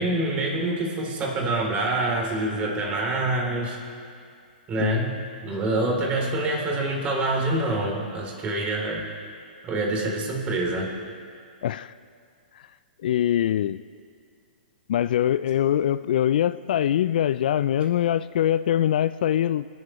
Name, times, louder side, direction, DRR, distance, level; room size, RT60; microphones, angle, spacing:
voice 1, 0.0-3.8 4.7-5.1 5.4-9.0 9.6-10.9, right 2 dB, 25° right, -1 dB, 3.1 m, -26 dB
voice 2, 11.6-11.9 13.0-13.8 14.9-19.7, left 11 dB, 60° left, 15 dB, 0.3 m, -23 dB
26.5 x 11.5 x 3.0 m, 2.3 s
hypercardioid pair, 130°, 5 cm